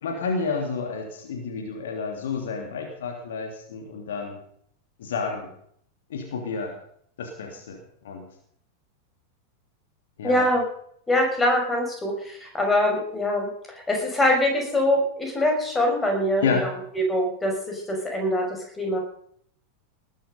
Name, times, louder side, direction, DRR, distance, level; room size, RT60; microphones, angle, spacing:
voice 1, 0.0-4.4 5.0-5.5 6.1-6.7 7.2-8.2 10.2-10.5 16.4-16.7, left 5 dB, 60° left, 2 dB, 2.9 m, -30 dB
voice 2, 10.2-10.6 11.1-13.5 13.9-16.7 16.9-19.0, left 1 dB, 15° left, 1 dB, 6.0 m, -23 dB
19.5 x 11.5 x 5.4 m, 0.67 s
figure-of-eight pair, 90°, 0 cm